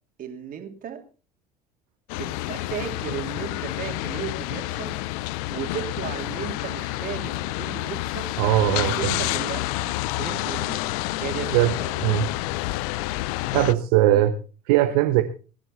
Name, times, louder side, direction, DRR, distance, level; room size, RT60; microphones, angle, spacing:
voice 1, 0.2-1.0 2.2-4.9 5.5-8.3 8.7-12.0 14.1-14.3, right 8 dB, 40° right, 5 dB, 3.1 m, -35 dB
sound 1, 2.1-13.7, left 18 dB, 60° left, 0.6 m, -29 dB
voice 2, 8.4-9.2 11.5-11.7 12.0-12.3 13.5-14.3 14.7-15.2, right 14 dB, 65° right, 7 dB, 1.1 m, -20 dB
21.5 x 10.5 x 4.1 m, 0.36 s
figure-of-eight pair, 65°, 21 cm